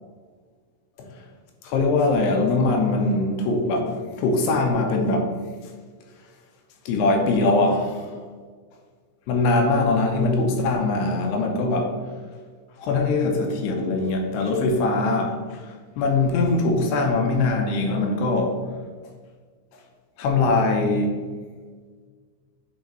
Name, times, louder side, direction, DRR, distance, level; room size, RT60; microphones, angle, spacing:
voice 1, 1.6-5.3 6.9-8.2 9.3-11.9 12.8-15.7 16.0-18.6 20.2-21.2, left 3 dB, 80° left, 3 dB, 2.7 m, -22 dB
8.1 x 4.5 x 3.1 m, 1.5 s
omnidirectional pair, 5.0 m